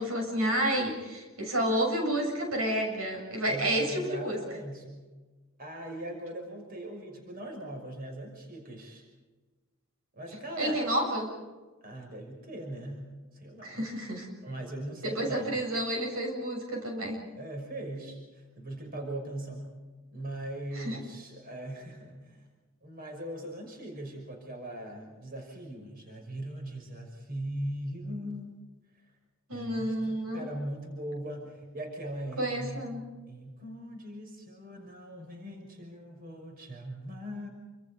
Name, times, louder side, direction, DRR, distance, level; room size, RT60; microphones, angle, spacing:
voice 1, 0.0-4.4 10.6-11.3 13.6-14.3 15.0-17.2 20.8-21.0 29.5-30.4 32.4-33.0, right 1 dB, 80° right, 2 dB, 7.1 m, -30 dB
voice 2, 3.4-5.0 5.6-9.0 10.2-10.8 11.8-13.9 14.4-15.7 17.3-19.7 20.1-22.4 22.8-28.5 29.5-32.9 33.3-37.5, right 1 dB, 45° right, 2 dB, 5.8 m, -40 dB
28.5 x 26.0 x 5.2 m, 1.3 s
head